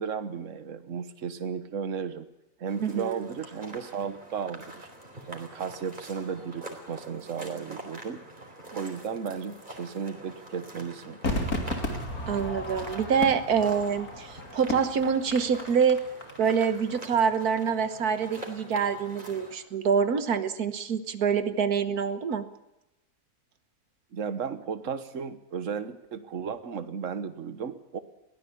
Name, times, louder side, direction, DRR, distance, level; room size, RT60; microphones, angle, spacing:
voice 1, 0.0-2.3 2.6-4.9 5.3-8.2 8.7-11.2 24.1-28.0, right 6 dB, 60° right, 11 dB, 1.6 m, -34 dB
sound 1, 2.7-19.6, right 1 dB, 30° right, 4.1 m, -45 dB
voice 2, 2.8-3.2 12.3-16.0 16.4-22.5, right 6 dB, 90° right, 11 dB, 1.7 m, -26 dB
Crowd / Fireworks, 11.2-16.6 16.9-17.0, left 2 dB, 75° left, 3.5 m, -34 dB
22.5 x 16.5 x 8.5 m, 0.89 s
omnidirectional pair, 1.6 m